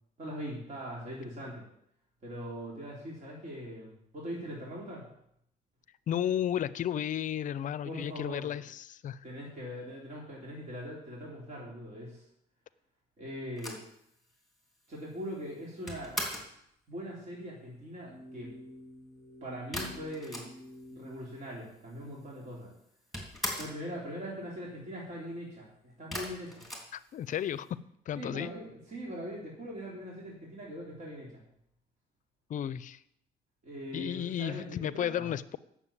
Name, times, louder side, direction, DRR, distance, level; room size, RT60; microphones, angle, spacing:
voice 1, 0.2-1.6 2.2-5.0 7.9-8.5 9.2-12.2 13.2-13.8 14.9-16.2 16.9-18.6 19.4-20.5 20.9-22.7 23.6-26.6 28.1-31.4 33.6-35.3, equal, 45° right, -4 dB, 3.6 m, -41 dB
voice 2, 6.1-9.2 26.9-27.7 28.1-28.5 32.5-33.0 33.9-35.6, left 10 dB, 50° left, 17 dB, 0.6 m, -33 dB
sound 1, 13.6-16.6 19.7-20.9 21.2-21.3 21.4-22.2 22.5-23.9 26.1-27.6, left 1 dB, ahead, 3.5 m, -40 dB
sound 2, 18.0-21.3, left 1 dB, 75° right, 2.5 m, -50 dB
8.9 x 7.2 x 8.6 m, 0.74 s
cardioid pair, 110°, 17 cm